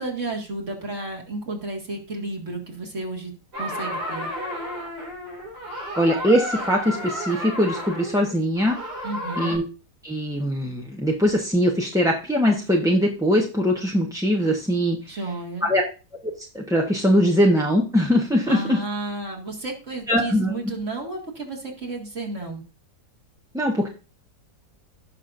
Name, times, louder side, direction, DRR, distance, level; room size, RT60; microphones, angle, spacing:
voice 1, 0.0-3.3 3.6-4.3 9.0-9.6 15.1-15.7 18.5-22.6, right 2 dB, 45° right, 0 dB, 2.4 m, -32 dB
sound 1, 3.5-9.6, equal, 85° right, 4.6 m, -32 dB
voice 2, 6.0-8.8 9.4-9.6 10.0-15.1 15.6-15.8 16.2-18.8 20.1-20.5 23.5-23.9, equal, 5° right, -2 dB, 0.8 m, -21 dB
17.0 x 6.0 x 2.6 m, 0.32 s
omnidirectional pair, 1.7 m